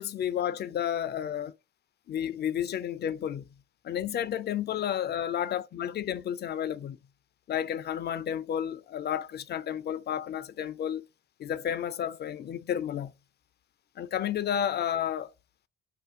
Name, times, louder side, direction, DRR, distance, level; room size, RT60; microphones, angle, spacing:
voice 1, 0.0-1.5 2.1-3.4 3.8-7.0 7.5-11.0 11.4-13.1 14.0-15.3, left 9 dB, 35° left, 0.4 m, -31 dB
2.5 x 2.1 x 3.6 m
hypercardioid pair, 50°, 30 cm